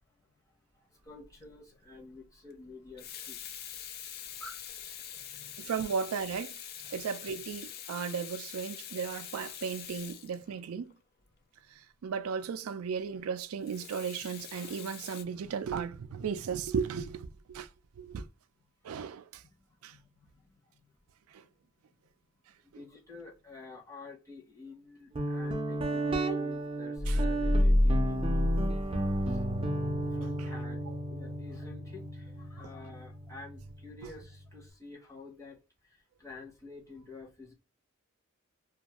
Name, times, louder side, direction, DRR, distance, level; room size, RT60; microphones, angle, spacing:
voice 1, 0.7-3.4 4.4-4.7 5.0-5.5 6.8-7.0 19.4-19.5 19.9-20.3 22.6-28.6 29.3-29.4 30.1-30.8 31.1-37.5, left 3 dB, 15° left, 0.7 m, -50 dB
Water tap faucet / Sink (filling or washing), 1.2-1.4 2.8-11.0 13.6-15.2, left 9 dB, 45° left, 0.3 m, -45 dB
voice 2, 5.6-6.5 6.9-10.9 12.0-17.7 18.0-18.2 18.8-19.4 19.8-19.9 21.3-21.4 27.1-27.2, right 6 dB, 90° right, 0.4 m, -35 dB
Guitar, 25.1-34.6, right 1 dB, 25° right, 0.5 m, -34 dB
sound 1, 27.0-29.5 29.9-30.0, left 1 dB, 70° left, 0.9 m, -27 dB
2.5 x 2.2 x 2.8 m
head